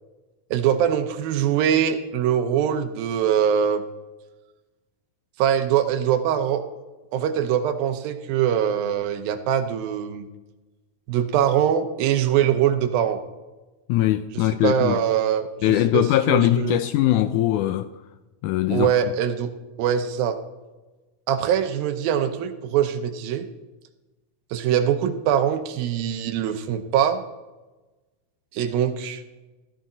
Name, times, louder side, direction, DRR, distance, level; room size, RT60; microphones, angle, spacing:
voice 1, 0.5-3.9 5.4-6.6 7.1-10.3 11.1-13.2 14.3-16.8 18.7-19.5 19.8-20.4 21.3-23.5 24.5-27.2 28.5-29.2, right 9 dB, 85° right, 2.6 m, -23 dB
voice 2, 13.9-15.0 15.6-17.9 18.4-18.9, left 13 dB, 85° left, 1.7 m, -21 dB
14.0 x 14.0 x 4.0 m
omnidirectional pair, 4.1 m